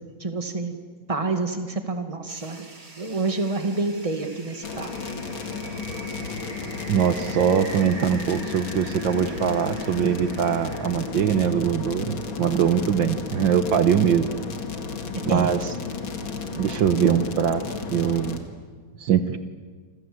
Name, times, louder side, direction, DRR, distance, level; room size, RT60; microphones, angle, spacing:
voice 1, 0.2-0.8 1.1-2.6 3.0-4.9 5.5-5.8 15.3-15.5, right 3 dB, 15° right, 6 dB, 2.1 m, -28 dB
sound 1, 2.3-11.2, right 2 dB, 50° right, 4.1 m, -43 dB
sound 2, 4.6-18.4, left 5 dB, 75° left, 2.8 m, -33 dB
voice 2, 6.9-14.3 15.3-15.6 16.5-17.6 17.9-18.4 19.0-19.4, right 8 dB, 70° right, 10 dB, 1.8 m, -22 dB
28.0 x 26.5 x 7.9 m, 1.5 s
omnidirectional pair, 2.2 m